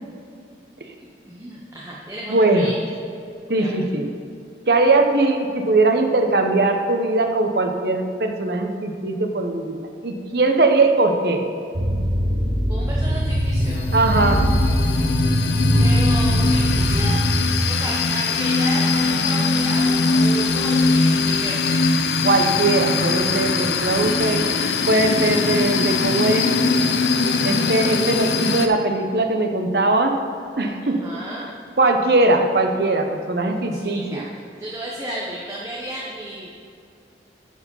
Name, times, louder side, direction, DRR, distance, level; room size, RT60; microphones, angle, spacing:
voice 1, 1.0-2.7 3.6-3.9 12.7-13.8 15.8-17.2 17.6-21.8 24.0-24.6 30.9-31.5 33.7-36.5, right 1 dB, 15° right, -5 dB, 0.9 m, -33 dB
voice 2, 2.3-2.7 3.5-4.1 4.7-9.8 10.0-11.4 13.9-14.4 22.2-24.4 24.9-26.5 27.4-30.1 30.6-31.0 31.8-34.2, right 2 dB, 60° right, 5 dB, 0.8 m, -20 dB
sound 1, 11.7-17.4, equal, 80° right, 1.5 m, -21 dB
sound 2, 12.8-28.7, left 3 dB, 70° left, 0.6 m, -21 dB
11.0 x 4.8 x 5.5 m, 2.5 s
head